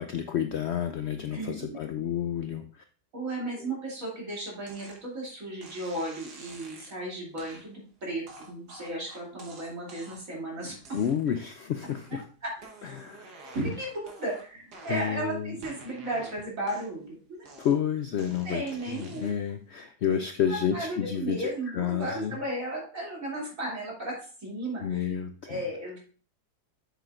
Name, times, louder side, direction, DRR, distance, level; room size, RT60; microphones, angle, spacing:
voice 1, 0.0-2.8 3.6-3.7 10.9-12.3 12.8-13.3 14.9-15.6 17.6-18.6 18.9-21.5 21.7-22.4 24.8-25.6, left 9 dB, 85° left, 7 dB, 0.5 m, -30 dB
voice 2, 1.3-1.8 3.1-11.0 12.1-12.5 13.4-17.7 18.4-19.3 20.1-20.2 20.5-25.1 25.5-26.0, right 1 dB, 55° right, -3 dB, 3.0 m, -35 dB
sound 1, 4.7-5.0 5.6-7.0 7.4-7.7 8.3-10.4 10.8-11.4 11.8-12.2 12.6-15.3 15.6-17.1 17.5-19.5, right 2 dB, 75° right, 1.8 m, -49 dB
7.6 x 6.9 x 2.4 m, 0.40 s
omnidirectional pair, 1.7 m